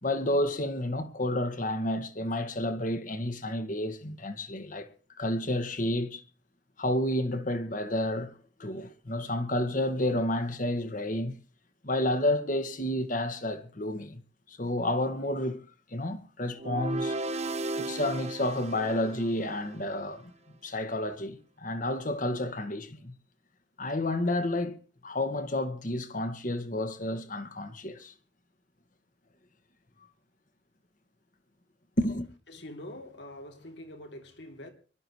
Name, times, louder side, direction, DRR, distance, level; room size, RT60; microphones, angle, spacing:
voice 1, 0.0-4.9 5.2-6.2 6.8-8.3 8.6-11.3 11.8-14.2 14.5-15.6 15.9-17.2 17.8-20.3 20.6-23.1 23.8-24.8 25.0-28.1 32.0-32.3, left 1 dB, 50° left, 1.7 m, -30 dB
sound 1, 16.5-19.8, right 2 dB, 40° right, 1.2 m, -35 dB
voice 2, 32.5-34.7, left 1 dB, 85° left, 3.1 m, -44 dB
24.5 x 12.5 x 3.2 m
head